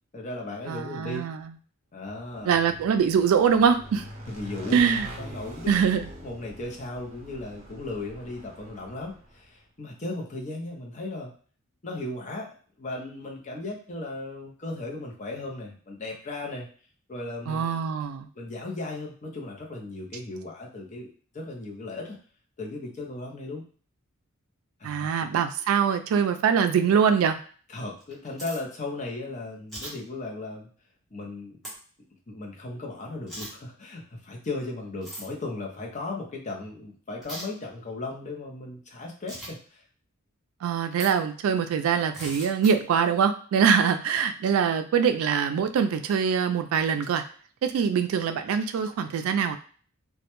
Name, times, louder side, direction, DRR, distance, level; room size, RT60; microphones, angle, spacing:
voice 1, 0.1-1.3 1.9-2.6 4.3-4.8 5.2-5.7 6.2-11.3 11.8-16.7 17.1-17.7 18.4-22.2 22.6-23.6 24.8-25.1 27.7-30.7 31.1-31.6 32.3-39.8, left 2 dB, 35° left, -1 dB, 0.5 m, -36 dB
voice 2, 0.7-1.4 2.5-4.0 4.7-5.1 5.7-6.1 17.5-18.3 24.8-27.4 40.6-47.2 47.6-49.6, right 7 dB, 85° right, 9 dB, 0.3 m, -23 dB
Motorcycle / Engine, 2.2-9.5, equal, 35° right, 0.6 m, -44 dB
sound 1, 28.0-28.6 29.7-29.9 31.6-31.7 33.3-33.5 35.0-35.3 37.2-37.4 39.3-39.5 40.9-41.1 42.1-42.7, right 1 dB, ahead, 0.7 m, -38 dB
2.2 x 2.1 x 2.9 m, 0.43 s
head